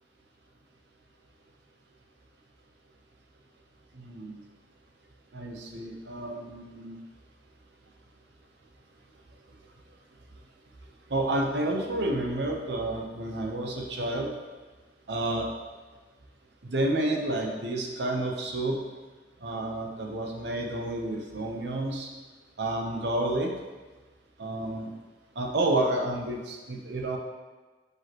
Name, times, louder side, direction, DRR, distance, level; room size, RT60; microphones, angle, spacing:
voice 1, 3.9-4.4 5.3-7.0 11.1-14.3 15.1-15.5 16.6-18.8 19.4-22.1 22.6-23.5 24.4-24.9 25.4-27.2, right 1 dB, 70° right, 1 dB, 0.8 m, -30 dB
6.1 x 5.4 x 3.0 m, 1.3 s
head